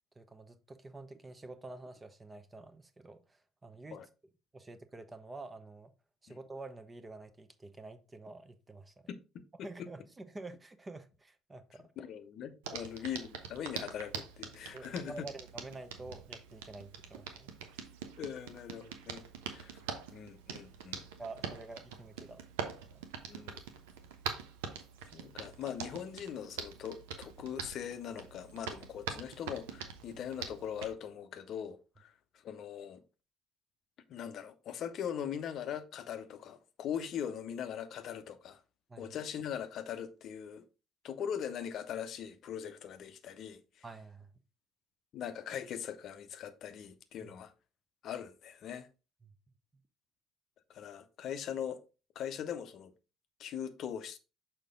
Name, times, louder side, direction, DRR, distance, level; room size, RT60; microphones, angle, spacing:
voice 1, 0.1-4.1 4.5-5.9 6.2-9.1 9.6-11.9 12.7-12.8 14.7-17.8 21.2-23.0 38.9-39.0 43.8-44.3 47.2-47.3 49.2-49.3, right 2 dB, 20° right, 0.8 m, -48 dB
voice 2, 9.1-9.9 12.0-15.2 18.2-19.8 20.1-21.0 23.3-23.6 24.3-24.4 25.1-32.1 32.4-33.0 34.1-38.6 39.0-40.7 41.0-43.8 45.1-47.5 48.0-48.9 50.7-51.8 52.2-52.9 53.4-54.2, left 8 dB, 50° left, 0.7 m, -41 dB
Hands, 12.6-30.9, right 7 dB, 65° right, 0.8 m, -44 dB
6.6 x 4.5 x 3.7 m
figure-of-eight pair, 55°, 0 cm